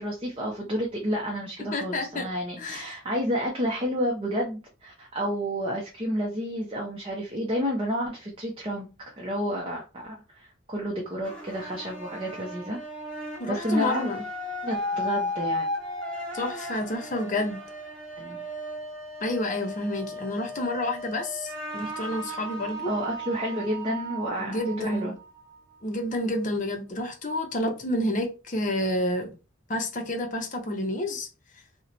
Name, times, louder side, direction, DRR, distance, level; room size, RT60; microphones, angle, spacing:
voice 1, 0.0-12.8 13.5-14.1 14.6-15.7 18.2-18.4 22.9-25.1, equal, 25° right, 0.6 m, -30 dB
voice 2, 1.7-2.3 2.6-2.9 13.4-14.2 16.3-17.6 19.2-22.9 24.4-25.1 25.8-29.3 29.7-31.3, left 1 dB, 40° left, 0.6 m, -29 dB
sound 1, 11.2-26.2, equal, 5° left, 0.9 m, -36 dB
2.8 x 2.1 x 3.8 m
head